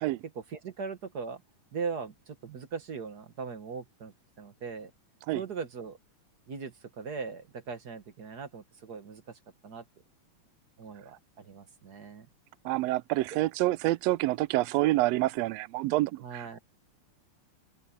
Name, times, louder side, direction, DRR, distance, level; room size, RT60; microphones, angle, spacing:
voice 1, 0.3-1.4 1.7-4.9 5.3-6.0 6.5-9.8 10.8-12.3 16.2-16.6, right 5 dB, 45° right, 1.4 m, -39 dB
voice 2, 12.6-16.6, right 18 dB, 80° right, 1.5 m, -27 dB
open air
omnidirectional pair, 3.4 m